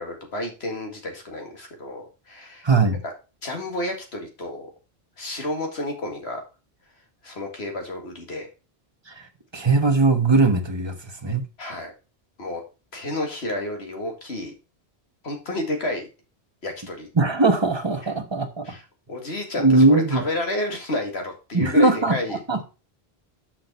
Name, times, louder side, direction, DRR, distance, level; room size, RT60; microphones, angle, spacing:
voice 1, 0.0-2.6 3.0-3.1 3.4-4.7 5.2-6.4 7.2-8.5 11.6-11.9 12.4-12.6 12.9-14.5 15.2-16.1 16.6-17.1 18.7-18.8 19.1-22.6, left 1 dB, 85° left, 2.3 m, -31 dB
voice 2, 2.6-3.0 9.1-9.3 9.5-11.4 17.1-18.6 19.6-20.2 21.5-22.6, right 3 dB, 25° right, 1.2 m, -20 dB
6.4 x 6.0 x 5.4 m
omnidirectional pair, 1.0 m